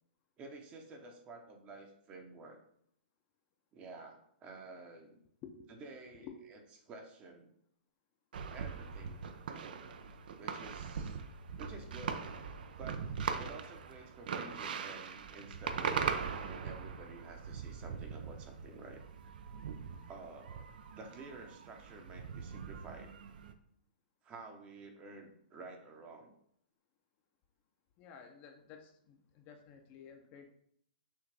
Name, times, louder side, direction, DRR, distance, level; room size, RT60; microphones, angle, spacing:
voice 1, 0.4-2.6 3.7-5.2 5.8-6.6 6.9-7.5 8.5-9.3 10.4-11.2 11.6-12.2 12.8-13.0 13.3-19.0 20.1-20.7 21.0-23.1 24.2-26.3, right 3 dB, 25° right, 3 dB, 0.8 m, -51 dB
voice 2, 5.4-5.7 6.1-6.4 28.0-30.5, left 7 dB, 30° left, 4 dB, 0.6 m, -53 dB
sound 1, 8.3-23.5, right 6 dB, 65° right, 0.5 m, -41 dB
6.2 x 2.5 x 3.4 m, 0.68 s
hypercardioid pair, 140°, 5 cm